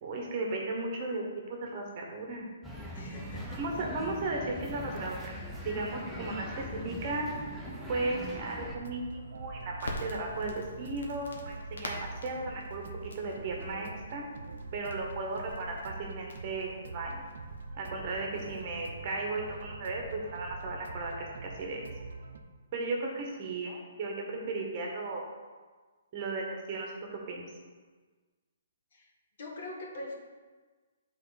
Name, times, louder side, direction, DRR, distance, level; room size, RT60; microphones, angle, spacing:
voice 1, 0.0-2.5 3.5-7.3 7.9-14.2 14.7-17.3 17.8-21.8 22.7-25.3 26.1-27.4, right 2 dB, 30° right, 0 dB, 1.0 m, -36 dB
sound 1, 2.6-8.8, left 1 dB, 5° right, 0.6 m, -41 dB
voice 2, 2.9-3.6 28.9-29.1 29.4-30.1, left 2 dB, 55° left, 0 dB, 1.3 m, -42 dB
sound 2, 8.6-22.4, right 3 dB, 70° right, 0.6 m, -44 dB
Crackle, 9.8-17.7, left 2 dB, 85° left, 1.2 m, -47 dB
8.3 x 3.9 x 4.1 m, 1.4 s
hypercardioid pair, 170°, 0 cm